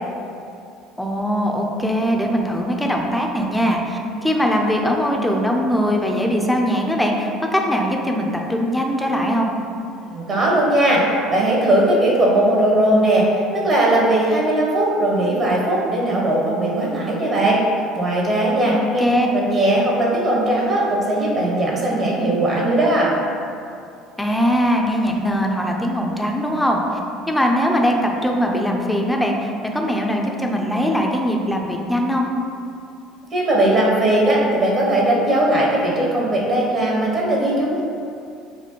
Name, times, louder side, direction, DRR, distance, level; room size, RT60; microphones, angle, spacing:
voice 1, 1.0-9.5 18.7-19.3 24.2-27.0 27.3-32.3, equal, 5° left, 1 dB, 0.4 m, -21 dB
voice 2, 10.1-17.6 17.9-19.0 19.3-23.1 33.3-37.8, right 1 dB, 40° right, -3 dB, 0.8 m, -18 dB
4.2 x 2.1 x 2.9 m, 2.5 s
hypercardioid pair, 75°, 0 cm